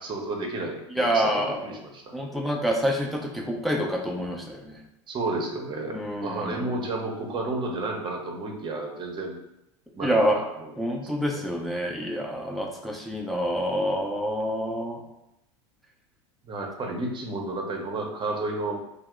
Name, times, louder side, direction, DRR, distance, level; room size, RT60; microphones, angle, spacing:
voice 1, 0.0-2.1 5.1-9.4 9.9-10.7 11.2-11.4 16.4-18.8, right 2 dB, 30° right, 1 dB, 0.8 m, -32 dB
voice 2, 0.9-1.6 2.1-4.8 5.9-6.7 10.0-10.4 10.8-15.0, equal, ahead, 0 dB, 0.6 m, -27 dB
2.7 x 2.0 x 3.5 m, 0.85 s
hypercardioid pair, 80°, 16 cm